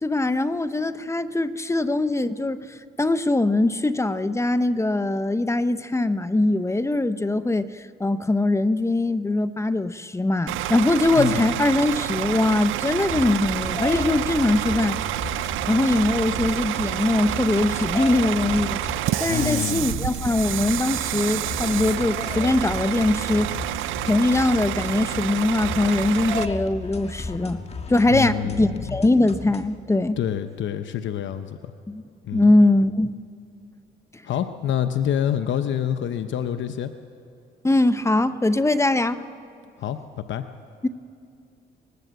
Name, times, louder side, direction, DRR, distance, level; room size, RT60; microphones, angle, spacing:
voice 1, 0.0-2.7 3.0-15.0 15.7-18.8 19.2-23.6 24.1-27.6 27.9-30.2 31.9-32.0 32.3-33.2 37.6-39.2 40.8-40.9, left 2 dB, 15° left, 13 dB, 0.7 m, -22 dB
Bus / Idling, 10.5-26.4, right 15 dB, 85° right, 0.5 m, -28 dB
voice 2, 11.1-11.5 19.3-20.1 28.1-29.0 30.2-31.7 32.2-32.5 34.2-36.9 39.8-40.4, left 9 dB, 70° left, 9 dB, 0.8 m, -27 dB
sound 1, 13.1-29.8, left 3 dB, 30° left, 1.6 m, -35 dB
21.5 x 20.0 x 8.1 m, 2.4 s
cardioid pair, 90°, 20 cm